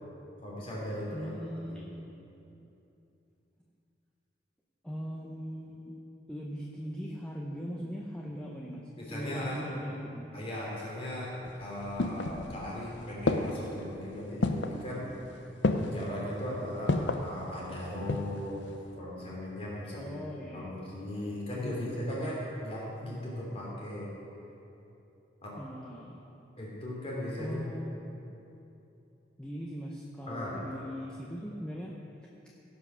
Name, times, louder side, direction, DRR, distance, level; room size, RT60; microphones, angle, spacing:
voice 1, 0.4-1.3 1.7-1.8 9.0-9.6 10.3-15.1 15.7-20.2 20.5-24.1 25.4-25.5 26.6-27.6 30.3-30.6, left 1 dB, 35° left, -5 dB, 3.0 m, -38 dB
voice 2, 1.1-2.0 2.6-2.7 4.8-6.0 6.3-10.3 20.0-20.8 21.5-22.1 25.6-26.2 27.4-28.0 29.4-32.0 32.4-32.5, equal, 5° left, -3 dB, 0.7 m, -40 dB
sound 1, 11.5-12.8 13.3-13.8 14.4-14.8 15.6-16.1 16.9-17.3 17.8-18.4 18.7-18.8, left 2 dB, 75° left, 0.6 m, -29 dB
16.5 x 5.6 x 6.2 m, 2.9 s
head